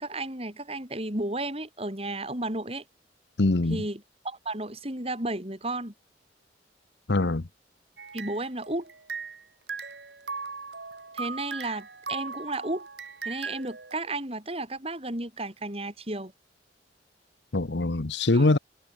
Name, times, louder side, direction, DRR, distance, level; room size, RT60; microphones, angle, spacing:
voice 1, 0.0-2.8 3.7-5.9 8.1-8.9 11.1-12.9 13.2-16.3 18.3-18.5, right 2 dB, 35° right, 6.7 m, -33 dB
voice 2, 3.4-3.8 7.1-7.4 17.5-18.6, left 2 dB, 85° left, 1.0 m, -23 dB
sound 1, 8.0-9.4 9.7-14.0, right 5 dB, 75° right, 3.8 m, -38 dB
head